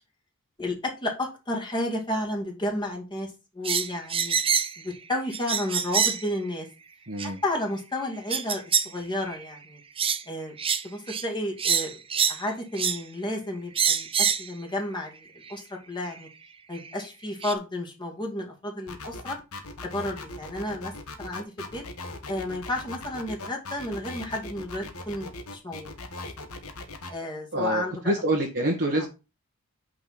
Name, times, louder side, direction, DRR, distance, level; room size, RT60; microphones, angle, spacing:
voice 1, 0.6-4.4 4.8-6.7 7.2-9.8 10.3-10.6 10.8-12.0 12.3-14.1 14.4-16.3 16.7-19.4 19.8-20.9 21.2-21.8 22.3-25.9 27.1-28.1 28.9-29.0, left 1 dB, 20° left, 0 dB, 2.3 m, -32 dB
sound 1, 3.7-4.8 5.3-6.3 7.2-7.3 8.3-8.9 9.3-9.5 10.0-10.2 10.6-10.8 11.1-11.3 11.6-12.4 12.8-13.0 13.8-14.5 15.5-15.6 16.8-16.9 17.4-17.5, right 7 dB, 25° right, 0.7 m, -25 dB
voice 2, 7.1-7.4 27.5-29.1, right 1 dB, 50° right, 0 dB, 1.7 m, -26 dB
sound 2, 18.9-27.1, left 2 dB, 70° left, 1.3 m, -39 dB
5.8 x 5.2 x 6.0 m, 0.29 s
head